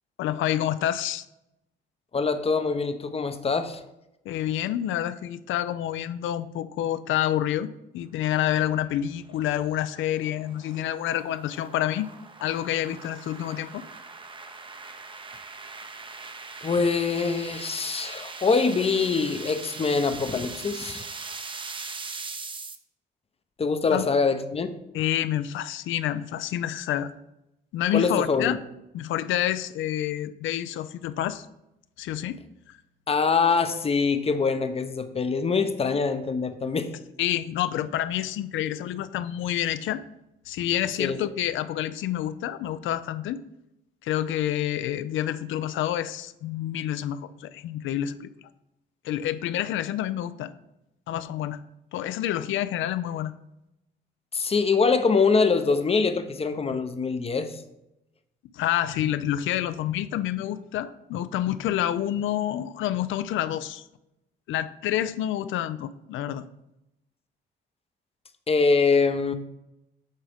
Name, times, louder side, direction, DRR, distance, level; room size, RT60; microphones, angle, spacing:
voice 1, 0.2-1.3 4.3-12.1 12.4-13.8 23.9-24.1 24.9-27.1 27.7-28.6 28.9-31.5 32.0-32.8 37.2-40.0 40.5-43.4 44.0-48.3 49.0-50.5 51.1-51.6 51.9-53.3 58.5-63.8 64.5-66.5, left 12 dB, 75° left, 13 dB, 0.4 m, -28 dB
voice 2, 2.1-3.8 16.6-21.1 23.6-24.7 27.9-28.6 33.1-36.9 41.0-41.2 54.3-57.6 68.5-69.3, left 4 dB, 30° left, 9 dB, 0.6 m, -24 dB
sound 1, 8.8-22.8, right 4 dB, 25° right, 0.6 m, -41 dB
8.0 x 3.7 x 3.4 m, 0.88 s
cardioid pair, 90°, 20 cm